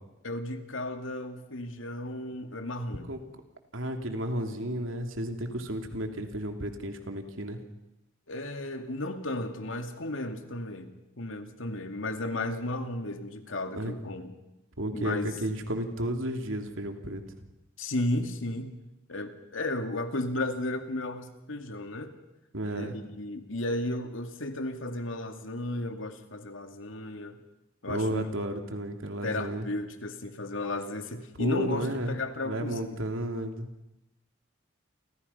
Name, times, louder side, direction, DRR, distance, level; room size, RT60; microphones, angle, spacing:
voice 1, 0.2-3.0 8.3-14.3 14.9-15.3 17.8-18.8 19.1-22.1 22.7-27.4 27.8-28.3 29.2-33.0, left 1 dB, 80° left, 6 dB, 2.5 m, -34 dB
voice 2, 3.7-7.6 13.7-13.9 14.8-17.2 22.5-22.9 27.9-29.7 31.4-32.1 32.4-33.9, right 1 dB, 80° right, 5 dB, 3.0 m, -32 dB
30.0 x 25.0 x 5.7 m, 0.93 s
head